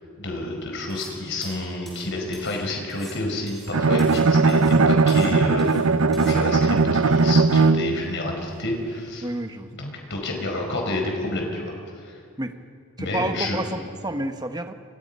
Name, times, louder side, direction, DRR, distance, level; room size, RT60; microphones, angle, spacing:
voice 1, 0.2-5.8 6.2-9.3 9.7-11.7 12.0-12.1 13.0-13.6, left 2 dB, 55° left, 2 dB, 4.9 m, -29 dB
sound 1, 0.9-1.2 1.4-2.6 2.9-4.2 4.5-4.8 5.1-5.8 6.1-6.4, equal, ahead, 6.1 m, -46 dB
Bowed string instrument, 3.7-8.1, right 4 dB, 70° right, 0.7 m, -19 dB
voice 2, 9.2-9.7 12.4-12.5 13.0-14.7, right 1 dB, 20° right, 7 dB, 1.2 m, -29 dB
29.0 x 24.5 x 5.6 m, 2.3 s
head